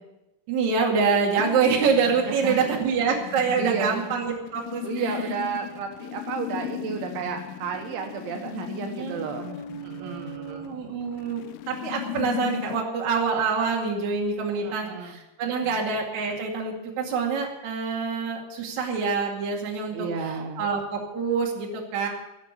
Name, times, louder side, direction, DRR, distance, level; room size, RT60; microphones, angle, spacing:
voice 1, 0.5-5.1 9.0-20.1 20.6-22.1, right 5 dB, 45° right, -1 dB, 3.0 m, -26 dB
sound 1, 1.4-12.8, left 15 dB, 85° left, 3.1 m, -37 dB
voice 2, 2.3-2.7 3.6-3.9 4.8-9.5 9.8-10.8 14.6-15.2 15.6-15.8 19.9-20.7, right 6 dB, 75° right, 3 dB, 3.5 m, -32 dB
17.0 x 7.3 x 8.2 m, 0.93 s
omnidirectional pair, 5.7 m